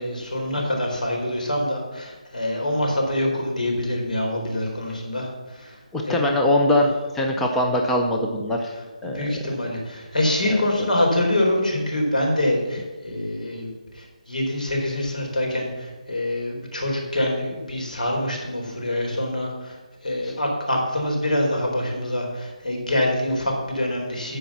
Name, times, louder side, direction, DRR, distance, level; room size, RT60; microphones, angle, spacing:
voice 1, 0.0-5.8 6.1-6.2 9.0-19.8 20.0-24.4, left 1 dB, 85° left, 0 dB, 4.2 m, -25 dB
voice 2, 5.9-8.7 9.0-9.3 10.5-10.7 20.2-20.3, left 1 dB, 5° left, 1 dB, 0.4 m, -22 dB
13.5 x 5.1 x 7.0 m, 1.2 s
hypercardioid pair, 175°, 4 cm